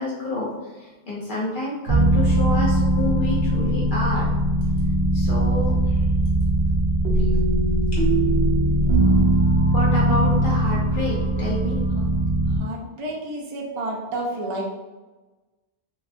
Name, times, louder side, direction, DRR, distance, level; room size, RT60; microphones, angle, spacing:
voice 1, 0.0-4.3 5.1-6.1 7.2-7.3 7.9-8.0 9.7-11.8, left 1 dB, 55° left, -6 dB, 0.7 m, -28 dB
sound 1, 1.9-12.6, right 1 dB, 80° right, 1.0 m, -20 dB
voice 2, 8.7-9.3 11.9-12.1 12.5-14.6, right 1 dB, 45° right, -2 dB, 0.4 m, -31 dB
3.3 x 2.3 x 2.5 m, 1.2 s
omnidirectional pair, 1.1 m